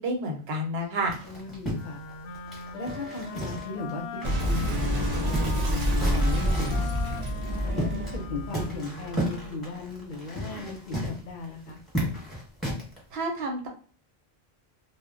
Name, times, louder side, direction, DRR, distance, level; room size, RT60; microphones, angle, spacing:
voice 1, 0.0-1.2 13.1-13.7, right 1 dB, 80° right, 2 dB, 1.0 m, -29 dB
sound 1, 1.1-3.9 4.2-4.3 4.6-6.9 7.4-8.2 8.5-13.0, equal, ahead, 0.9 m, -34 dB
voice 2, 1.2-2.0 2.7-4.0 4.4-6.9 7.6-11.8, left 3 dB, 55° left, 3 dB, 0.7 m, -37 dB
Wind instrument woodwind instrument, 1.7-9.8, left 4 dB, 85° left, 0.8 m, -39 dB
Boom, 4.2-9.5, equal, 50° right, 0.6 m, -27 dB
2.1 x 2.0 x 3.7 m, 0.41 s
omnidirectional pair, 1.1 m